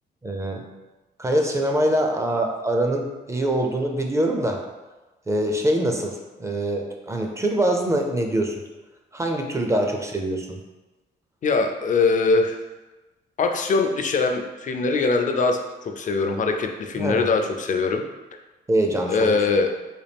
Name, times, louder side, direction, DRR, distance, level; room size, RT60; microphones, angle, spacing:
voice 1, 0.2-0.7 1.2-4.6 5.3-8.6 9.1-10.6 16.9-17.3 18.7-19.3, right 1 dB, 15° right, 2 dB, 0.4 m, -24 dB
voice 2, 11.4-12.6 13.4-18.0 19.1-19.7, left 4 dB, 45° left, 5 dB, 0.4 m, -22 dB
4.1 x 2.3 x 3.4 m, 1.1 s
cardioid pair, 110°, 18 cm